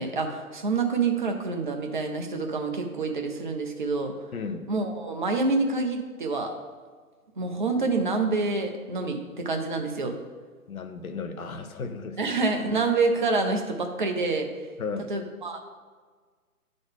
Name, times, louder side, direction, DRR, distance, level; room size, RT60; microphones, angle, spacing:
voice 1, 0.0-4.1 4.7-6.5 7.4-10.1 12.2-14.5 15.1-15.6, right 3 dB, 35° right, 4 dB, 0.6 m, -27 dB
voice 2, 4.3-4.7 10.7-12.2 14.8-15.1, left 4 dB, 70° left, 8 dB, 0.8 m, -34 dB
9.6 x 3.9 x 3.7 m, 1.5 s
figure-of-eight pair, 140°, 45 cm